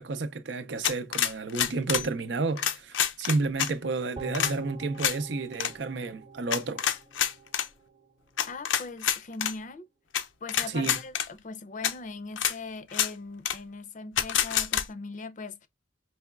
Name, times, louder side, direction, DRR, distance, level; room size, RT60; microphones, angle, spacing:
voice 1, 0.0-6.9 10.7-11.0, right 3 dB, 65° right, 0.5 m, -31 dB
sound 1, 0.8-2.1 2.6-3.7 4.3-4.5 5.0-5.2 5.5-5.7 6.5-7.7 8.4-9.5 10.1-10.2 10.5-11.3 11.8-11.9 12.4-12.5 12.9-13.1 13.4-13.6 14.2-14.8, left 9 dB, 90° left, 0.6 m, -27 dB
sound 2, 4.2-7.5 7.9-8.0, right 2 dB, 25° right, 0.8 m, -43 dB
voice 2, 8.4-9.9 10.4-15.7, left 4 dB, 45° left, 0.5 m, -40 dB
4.8 x 3.0 x 2.2 m
head